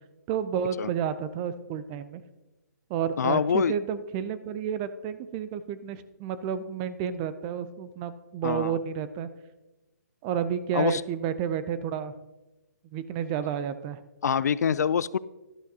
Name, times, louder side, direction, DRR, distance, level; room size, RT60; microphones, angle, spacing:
voice 1, 0.3-2.2 2.9-9.3 10.2-12.1 12.9-14.0, right 8 dB, 20° right, 13 dB, 0.4 m, -31 dB
voice 2, 3.2-3.7 8.4-8.8 10.7-11.0 14.2-15.2, left 7 dB, 70° left, 19 dB, 0.4 m, -25 dB
11.5 x 11.0 x 2.8 m, 1.0 s
hypercardioid pair, 155°, 9 cm